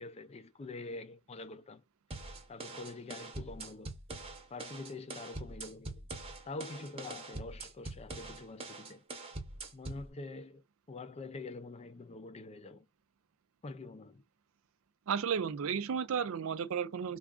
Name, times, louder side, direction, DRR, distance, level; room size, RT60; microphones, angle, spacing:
voice 1, 0.0-1.8 2.5-3.9 4.5-6.1 6.4-9.0 9.7-12.9 13.6-14.2, left 3 dB, 30° left, 0.4 m, -45 dB
sound 1, 2.1-10.1, right 2 dB, 25° right, 0.8 m, -44 dB
voice 2, 15.1-17.2, right 7 dB, 65° right, 0.4 m, -33 dB
3.4 x 2.4 x 3.6 m
head